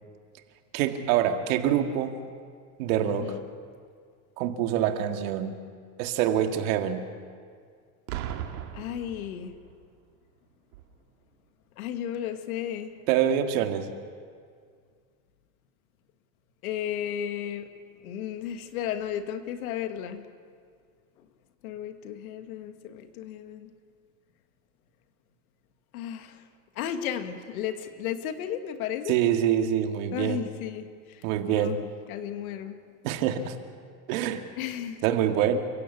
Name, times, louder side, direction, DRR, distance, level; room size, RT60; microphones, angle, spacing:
voice 1, 0.7-2.2 2.8-3.3 4.4-5.6 6.0-7.0 13.1-13.9 29.1-30.4 31.2-31.8 33.0-33.6 34.1-34.4 35.0-35.6, right 10 dB, 65° right, 6 dB, 2.1 m, -25 dB
voice 2, 3.0-3.5 8.7-9.6 11.8-13.0 16.6-17.7 18.0-20.3 21.2-21.3 21.6-23.7 25.9-26.5 26.8-29.2 30.1-31.8 32.1-32.8 34.6-35.0, left 10 dB, 80° left, 8 dB, 2.0 m, -34 dB
Boom, 8.1-9.8 10.7-11.0, right 10 dB, 85° right, 2.2 m, -37 dB
29.5 x 15.5 x 8.4 m, 2.1 s
supercardioid pair, 150°, 43 cm